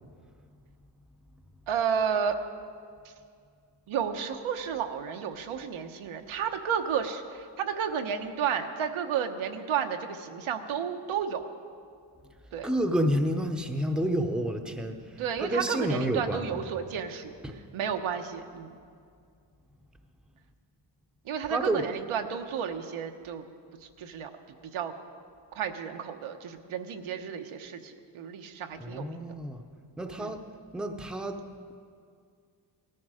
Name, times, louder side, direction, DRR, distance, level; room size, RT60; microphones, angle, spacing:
voice 1, 1.7-2.4 3.9-11.4 12.5-12.7 15.2-17.3 17.7-18.8 21.3-23.5 24.0-24.3 24.7-24.9 25.5-29.3 30.2-30.3, right 7 dB, 85° right, 5 dB, 1.1 m, -32 dB
voice 2, 12.6-16.6 17.4-17.6 21.5-21.9 28.8-29.6 30.0-30.4 30.7-31.4, right 1 dB, ahead, 4 dB, 0.7 m, -29 dB
18.5 x 13.5 x 4.9 m, 2.2 s
wide cardioid pair, 135°, 48 cm